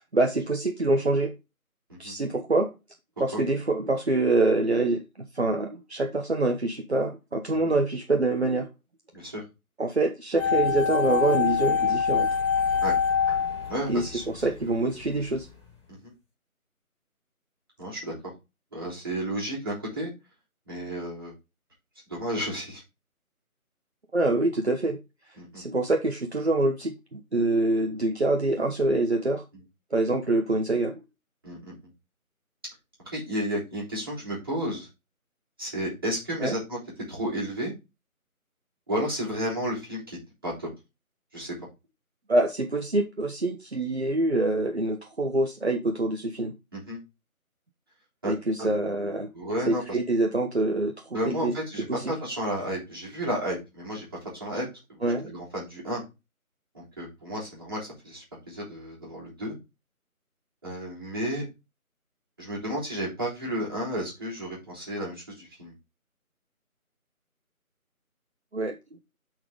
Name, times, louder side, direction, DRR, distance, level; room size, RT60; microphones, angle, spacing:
voice 1, 0.1-1.3 2.0-2.7 3.2-5.0 5.3-8.7 9.8-12.3 13.9-15.5 24.1-25.0 25.5-29.4 29.9-31.0 36.4-36.6 42.3-46.5 48.3-49.3 49.7-50.9 51.2-51.5 51.9-52.2 55.0-55.3 68.5-68.8, right 2 dB, 45° right, 3 dB, 1.1 m, -25 dB
voice 2, 9.1-9.4 12.8-12.9 13.7-14.2 15.9-16.1 17.8-18.1 18.7-20.1 20.7-21.3 22.1-22.8 25.4-25.6 31.4-31.7 33.0-34.9 35.6-36.8 37.1-37.7 38.9-40.2 40.4-40.7 41.3-41.5 46.7-47.0 48.2-48.3 48.6-48.7 49.3-50.0 51.1-54.1 54.4-56.0 56.7-59.5 60.6-61.4 62.4-65.7, equal, 15° right, -7 dB, 3.3 m, -32 dB
sound 1, 10.4-14.5 14.7-14.8, left 6 dB, 20° left, 4.6 m, -25 dB
8.4 x 4.7 x 3.7 m, 0.25 s
figure-of-eight pair, 175°, 44 cm